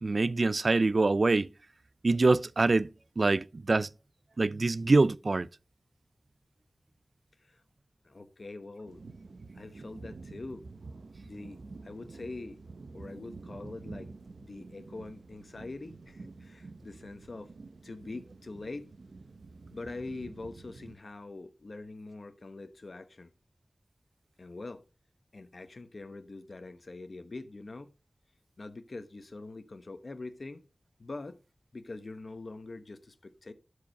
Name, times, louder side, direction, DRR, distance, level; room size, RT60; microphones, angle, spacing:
voice 1, 0.0-1.5 2.0-3.9 4.4-5.5, right 3 dB, 65° right, 0.4 m, -25 dB
voice 2, 8.0-9.0 9.5-10.6 11.0-12.6 12.9-14.1 14.4-17.5 17.8-18.9 19.7-23.3 24.4-24.8 25.3-27.9 28.6-30.6 31.0-31.4 31.7-33.5, left 3 dB, 65° left, 1.0 m, -44 dB
sound 1, 8.8-21.0, right 3 dB, 90° right, 0.8 m, -48 dB
12.5 x 4.9 x 5.3 m
wide cardioid pair, 55°, 0 cm